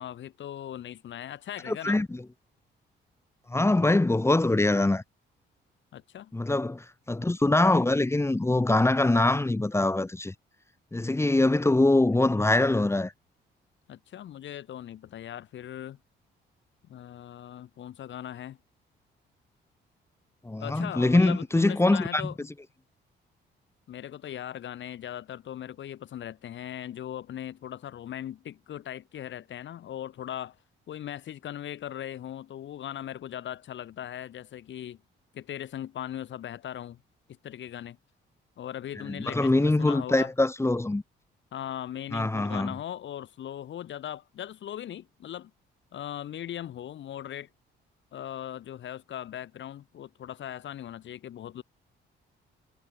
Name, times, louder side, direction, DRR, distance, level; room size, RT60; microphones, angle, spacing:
voice 1, 0.0-2.0 5.9-6.3 13.9-16.0 16.8-18.6 20.6-22.4 23.9-30.6 30.9-35.0 35.3-37.0 37.3-38.0 38.6-40.3 41.5-45.5 45.9-47.5 48.1-51.6, left 11 dB, 70° left, 3.4 m, -39 dB
voice 2, 1.6-2.2 3.5-5.0 6.3-10.3 10.9-13.1 20.4-22.3 39.1-41.0 42.1-42.7, left 2 dB, 15° left, 1.5 m, -23 dB
cardioid pair, 90°, 20 cm